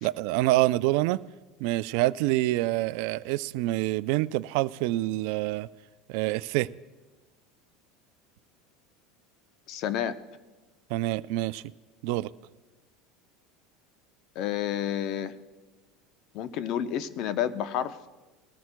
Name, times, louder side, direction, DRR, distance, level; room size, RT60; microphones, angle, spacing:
voice 1, 0.0-1.2 1.6-5.7 6.1-6.7 10.9-11.6 12.0-12.3, right 17 dB, 70° right, 17 dB, 0.3 m, -26 dB
voice 2, 9.7-10.1 14.4-15.3 16.3-18.0, left 10 dB, 55° left, 12 dB, 0.7 m, -30 dB
20.0 x 14.0 x 2.2 m, 1.2 s
supercardioid pair, 115°, 0 cm